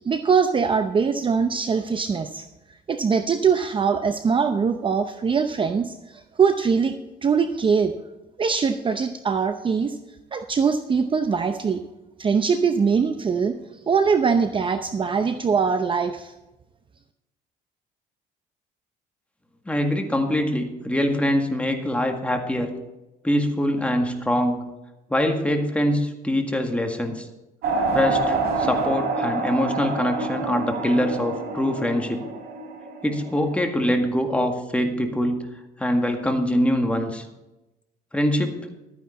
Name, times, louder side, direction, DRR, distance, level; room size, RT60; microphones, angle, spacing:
voice 1, 0.0-2.4 2.9-7.9 8.4-10.0 10.3-11.8 12.2-13.6 13.9-16.3, right 5 dB, 30° right, 8 dB, 0.7 m, -22 dB
voice 2, 19.7-22.7 23.2-24.6 25.1-27.3 27.9-32.2 33.0-35.4 35.8-37.3 38.1-38.7, equal, 5° left, 4 dB, 1.8 m, -23 dB
sound 1, 27.6-33.6, right 3 dB, 65° right, 4.8 m, -27 dB
13.0 x 9.6 x 4.2 m, 1.0 s
cardioid pair, 110°, 17 cm